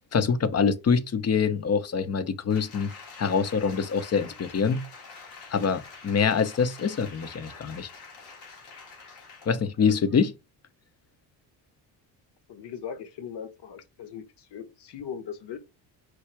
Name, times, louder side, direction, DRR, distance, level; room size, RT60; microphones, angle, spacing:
voice 1, 0.1-2.9 3.2-4.8 5.5-7.9 9.5-10.3, left 6 dB, 35° left, 0.7 m, -25 dB
Applause, 2.5-9.6 10.1-10.2, left 4 dB, 90° left, 2.0 m, -46 dB
voice 2, 12.5-15.6, left 7 dB, 60° left, 1.2 m, -39 dB
4.7 x 2.3 x 4.6 m
supercardioid pair, 75°, 46 cm